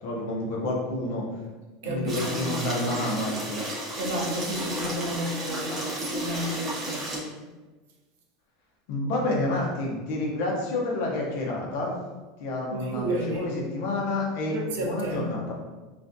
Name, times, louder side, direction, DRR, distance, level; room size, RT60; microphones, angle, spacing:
voice 1, 0.0-1.3 1.8-3.6 8.9-12.0 12.4-15.5, left 2 dB, 60° left, -2 dB, 0.6 m, -29 dB
voice 2, 1.8-2.8 4.0-7.3 12.7-13.5 14.5-15.3, right 1 dB, 90° right, 0 dB, 0.5 m, -32 dB
sound 1, 2.1-7.2, equal, 20° right, 0.6 m, -33 dB
2.4 x 2.2 x 2.5 m, 1.2 s
supercardioid pair, 170°, 0 cm